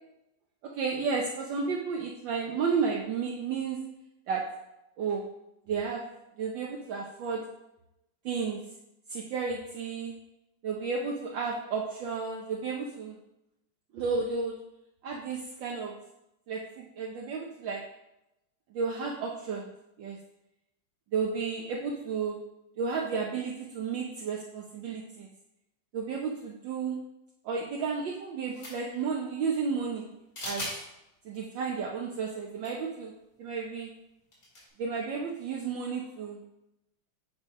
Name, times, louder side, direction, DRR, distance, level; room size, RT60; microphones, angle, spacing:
voice 1, 0.6-3.8 4.3-4.4 5.0-5.2 5.7-6.0 6.4-7.4 8.2-8.6 9.1-10.1 10.6-13.2 13.9-14.6 15.0-16.0 16.5-17.8 18.7-19.7 20.0-20.2 21.1-22.4 22.8-25.3 25.9-27.0 27.4-30.1 30.4-30.7 31.2-33.1 33.4-33.9 34.8-36.4, right 5 dB, 70° right, -1 dB, 1.4 m, -32 dB
sound 1, 28.5-29.0 30.4-30.8 31.3-31.4 32.6-32.7 33.0-33.1 34.3-34.7, left 1 dB, 55° left, 3.0 m, -38 dB
8.3 x 3.3 x 5.2 m, 0.88 s
omnidirectional pair, 2.3 m